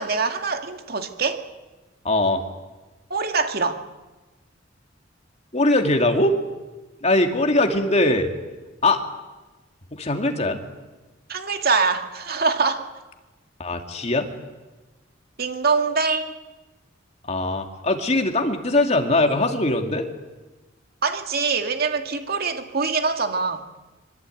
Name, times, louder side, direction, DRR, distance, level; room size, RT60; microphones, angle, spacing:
voice 1, 0.0-1.4 3.1-3.8 11.3-12.8 15.4-16.3 21.0-23.6, right 4 dB, 55° right, 6 dB, 2.2 m, -24 dB
voice 2, 2.0-2.4 5.5-6.3 7.0-8.3 8.8-9.0 9.9-10.6 13.6-14.3 17.3-20.1, left 2 dB, 35° left, 5 dB, 2.5 m, -21 dB
25.0 x 24.0 x 9.3 m, 1.2 s
head